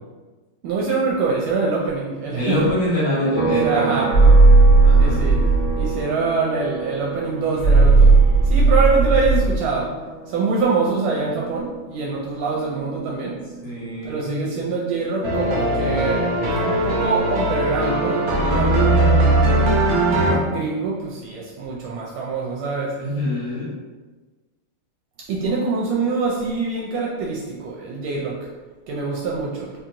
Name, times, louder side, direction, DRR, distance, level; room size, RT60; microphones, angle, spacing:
voice 1, 0.6-2.7 3.6-4.1 5.0-8.2 8.4-10.0 10.3-13.4 14.0-16.4 16.6-19.7 20.1-23.0 25.3-28.4 28.9-29.7, right 4 dB, 80° right, -3 dB, 1.4 m, -25 dB
voice 2, 2.3-4.3 4.8-5.3 13.6-14.5 23.0-23.7, left 1 dB, 70° left, -7 dB, 2.1 m, -25 dB
sound 1, 3.3-16.9 17.2-19.4, right 6 dB, 30° left, 0.9 m, -32 dB
sound 2, 4.1-5.9 7.6-9.6, right 3 dB, 50° left, 1.2 m, -13 dB
sound 3, 15.2-20.3, right 1 dB, 65° right, 1.0 m, -19 dB
3.9 x 2.8 x 2.5 m, 1.3 s
omnidirectional pair, 2.3 m